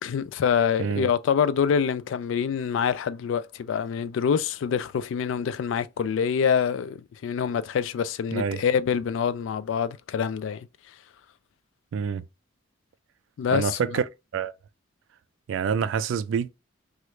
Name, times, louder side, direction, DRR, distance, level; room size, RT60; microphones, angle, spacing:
voice 1, 0.0-7.0 7.2-10.6 13.4-13.9, left 7 dB, 75° left, 0.3 m, -25 dB
voice 2, 0.8-1.1 8.3-8.6 11.9-12.2 13.5-14.1 14.3-14.5 15.5-16.5, right 6 dB, 75° right, 0.3 m, -26 dB
3.0 x 2.4 x 3.0 m
head